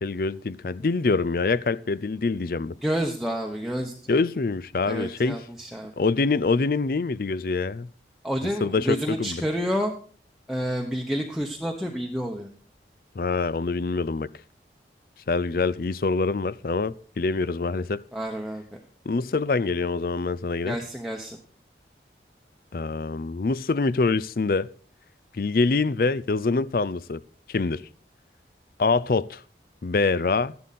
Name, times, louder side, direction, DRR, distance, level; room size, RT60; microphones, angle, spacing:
voice 1, 0.0-2.7 4.1-5.4 6.0-7.9 8.6-9.4 13.2-14.3 15.3-18.0 19.1-20.8 22.7-24.7 25.3-27.2 27.5-27.8 28.8-29.4 29.8-30.5, left 3 dB, 55° left, 0.5 m, -25 dB
voice 2, 2.8-4.2 4.8-5.9 8.2-9.9 10.5-12.5 18.1-18.8 20.6-21.4, equal, ahead, 1.0 m, -29 dB
13.5 x 11.0 x 4.2 m
head